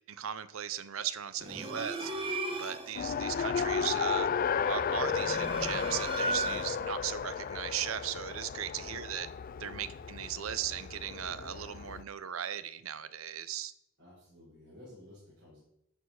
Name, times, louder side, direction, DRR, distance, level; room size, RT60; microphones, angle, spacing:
voice 1, 0.1-4.3 4.7-9.3 9.6-13.7, right 9 dB, 80° right, 14 dB, 0.7 m, -37 dB
sound 1, 1.4-3.0 4.9-6.9, right 2 dB, 25° right, 1.1 m, -36 dB
Race car auto racing, 2.9-12.0, left 6 dB, 40° left, 0.3 m, -34 dB
voice 2, 8.7-9.1 14.0-15.6, left 1 dB, 55° right, -8 dB, 5.0 m, -53 dB
12.5 x 4.8 x 6.4 m, 0.76 s
head